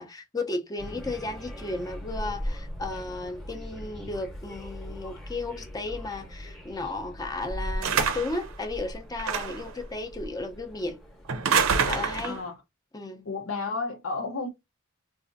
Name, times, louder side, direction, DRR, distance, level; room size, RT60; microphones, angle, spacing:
voice 1, 0.0-11.0 11.9-12.4 12.9-13.3, left 2 dB, 20° left, 0.6 m, -34 dB
sound 1, 0.8-12.4, equal, ahead, 0.9 m, -39 dB
sound 2, 7.8-8.4 9.2-9.7 11.3-12.4, right 6 dB, 85° right, 0.6 m, -26 dB
voice 2, 12.2-12.6 13.2-14.5, left 3 dB, 85° left, 0.7 m, -32 dB
4.0 x 2.4 x 2.5 m
head